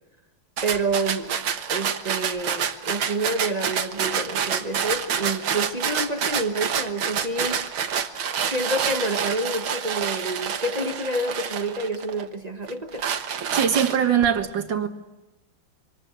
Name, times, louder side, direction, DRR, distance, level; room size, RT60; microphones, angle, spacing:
voice 1, 0.6-1.3 1.7-7.7 8.5-13.1, right 2 dB, 25° right, 1.0 m, -28 dB
sound 1, 0.6-12.2 12.7-14.2, right 7 dB, 90° right, 2.1 m, -28 dB
voice 2, 13.5-14.9, right 8 dB, 65° right, 2.3 m, -22 dB
26.5 x 24.5 x 7.9 m
omnidirectional pair, 2.2 m